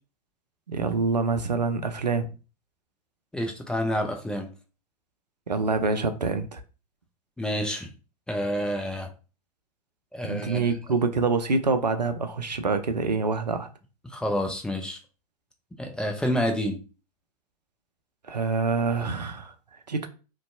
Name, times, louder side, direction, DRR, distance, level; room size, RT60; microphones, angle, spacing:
voice 1, 0.7-2.3 5.5-6.6 10.2-13.7 18.3-19.5 19.9-20.1, right 4 dB, 90° right, 0.4 m, -26 dB
voice 2, 3.3-4.5 7.4-7.9 8.3-9.1 10.1-10.7 14.1-15.0 15.8-16.8, equal, 5° left, 0.4 m, -28 dB
2.5 x 2.2 x 2.5 m
figure-of-eight pair, 95°, 20 cm